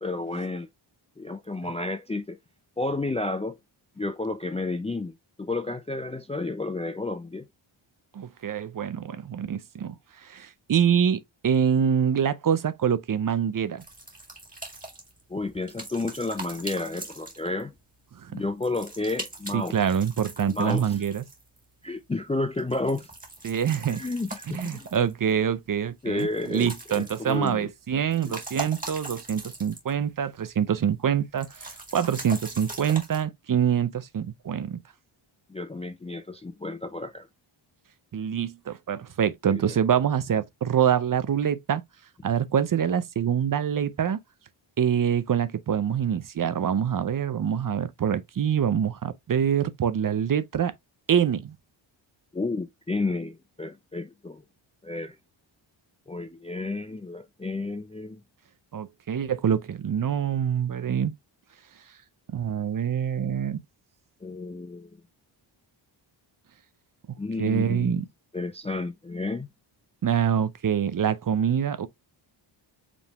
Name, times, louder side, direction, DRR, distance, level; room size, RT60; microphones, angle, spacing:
voice 1, 0.0-0.7 1.2-2.4 2.8-3.6 4.0-7.5 15.3-17.7 18.3-19.9 20.4-21.0 21.8-23.1 23.9-24.9 26.0-27.7 28.3-28.4 35.5-37.3 39.5-39.8 52.3-54.4 54.8-55.2 56.1-58.2 64.2-64.9 67.2-68.0 68.3-69.5, left 2 dB, 15° left, 0.3 m, -31 dB
voice 2, 8.1-9.9 10.3-13.8 18.2-18.4 19.5-21.2 23.4-24.0 24.5-34.8 38.1-41.8 42.2-44.2 44.8-50.7 51.1-51.5 58.7-61.1 62.3-63.6 67.4-68.0 70.0-71.9, right 8 dB, 45° right, 0.6 m, -25 dB
sound 1, 13.8-17.8 18.6-21.6 22.5-25.3 26.2-27.6 28.0-30.0 30.3-30.4 31.4-33.2, right 2 dB, 15° right, 1.9 m, -41 dB
5.1 x 3.4 x 2.3 m
wide cardioid pair, 115°, 48 cm